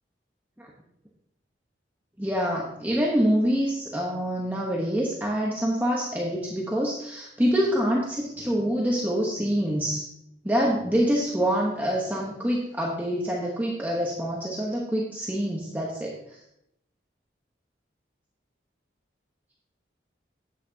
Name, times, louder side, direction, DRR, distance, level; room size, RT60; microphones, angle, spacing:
voice 1, 2.2-10.0 10.4-16.4, equal, 10° right, -3 dB, 1.0 m, -26 dB
10.5 x 8.3 x 2.8 m, 0.80 s
head